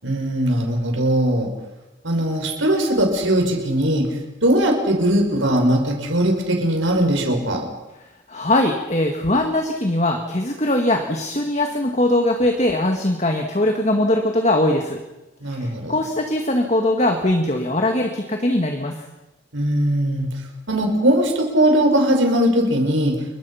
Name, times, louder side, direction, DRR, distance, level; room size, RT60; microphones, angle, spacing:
voice 1, 0.0-1.5 2.0-4.1 4.4-7.6 15.4-16.0 19.5-20.3 20.7-23.1, right 1 dB, 85° right, 2 dB, 6.1 m, -19 dB
voice 2, 8.3-15.0 15.5-19.0, left 1 dB, 35° left, 3 dB, 1.9 m, -21 dB
30.0 x 23.5 x 5.8 m, 1.0 s
head